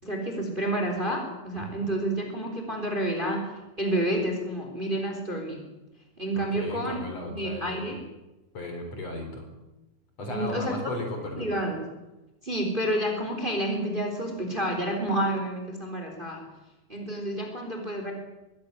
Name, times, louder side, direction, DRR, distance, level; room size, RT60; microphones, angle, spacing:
voice 1, 0.0-3.4 3.8-5.6 6.2-7.0 7.2-8.0 10.3-10.8 11.4-11.8 12.4-16.4 16.9-18.1, right 1 dB, 15° right, 3 dB, 3.8 m, -29 dB
voice 2, 1.5-1.9 6.4-7.9 8.5-9.5 10.2-11.5, left 1 dB, 45° left, 4 dB, 4.9 m, -36 dB
22.5 x 17.0 x 9.4 m, 1.0 s
omnidirectional pair, 4.2 m